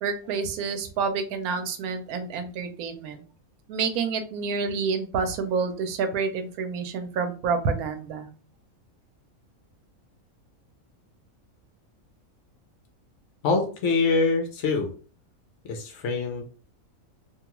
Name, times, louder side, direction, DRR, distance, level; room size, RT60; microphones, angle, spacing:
voice 1, 0.0-3.2 3.7-8.3, right 5 dB, 85° right, 7 dB, 1.1 m, -28 dB
voice 2, 13.4-14.9 15.6-16.7, left 4 dB, 65° left, 3 dB, 0.9 m, -25 dB
2.6 x 2.3 x 2.9 m, 0.38 s
omnidirectional pair, 1.5 m